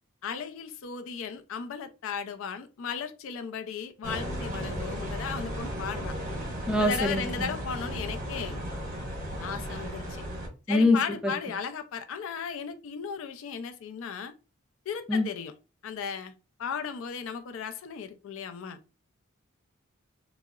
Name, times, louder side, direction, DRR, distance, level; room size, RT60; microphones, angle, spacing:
voice 1, 0.2-6.1 6.8-8.6 9.4-10.2 10.7-14.3 14.9-15.5 15.8-16.3 16.6-18.8, left 6 dB, 65° left, 0.4 m, -36 dB
sound 1, 4.0-10.5, equal, 40° right, 1.0 m, -35 dB
voice 2, 6.7-7.5 10.7-11.0 11.2-11.3 15.1-15.3, left 2 dB, 5° right, 0.4 m, -24 dB
3.7 x 2.0 x 2.3 m
head